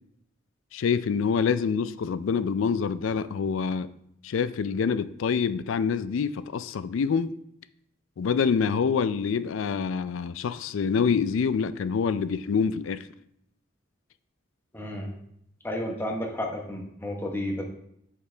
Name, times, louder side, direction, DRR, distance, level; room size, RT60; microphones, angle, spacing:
voice 1, 0.7-3.9 4.2-7.4 8.2-13.1, left 6 dB, 75° left, 14 dB, 0.4 m, -26 dB
voice 2, 14.7-15.1 15.6-17.6, left 1 dB, 10° left, 0 dB, 1.0 m, -32 dB
8.1 x 4.8 x 3.3 m, 0.73 s
head